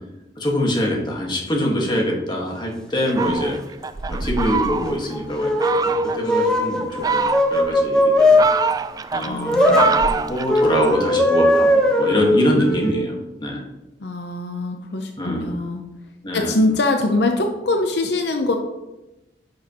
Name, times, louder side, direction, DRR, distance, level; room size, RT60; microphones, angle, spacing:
voice 1, 0.4-3.6 4.1-8.4 9.1-13.6 15.2-15.6 16.2-16.6, equal, 25° left, -1 dB, 1.6 m, -24 dB
Fowl, 3.0-5.1 5.6-6.2 6.8-7.7 8.2-11.0, right 5 dB, 20° right, 0.3 m, -24 dB
sound 1, 4.9-8.5 9.4-9.9 10.5-12.9, left 1 dB, 5° left, 1.0 m, -18 dB
voice 2, 9.3-9.9 14.0-15.8 16.3-18.5, left 2 dB, 70° left, 4 dB, 0.7 m, -23 dB
10.5 x 6.3 x 3.0 m, 1.0 s
head